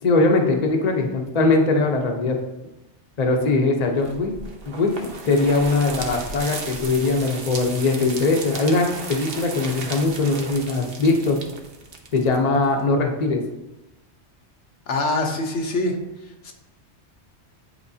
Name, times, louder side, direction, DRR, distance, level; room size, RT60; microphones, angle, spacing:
voice 1, 0.0-2.4 3.2-4.3 4.6-11.4 12.1-13.4, left 3 dB, 40° left, 2 dB, 0.8 m, -21 dB
sound 1, 4.0-12.8, right 3 dB, 60° right, 1.0 m, -35 dB
voice 2, 14.9-16.0 16.4-16.5, left 2 dB, 80° left, 1 dB, 1.3 m, -24 dB
9.8 x 4.5 x 2.7 m, 0.97 s
omnidirectional pair, 1.2 m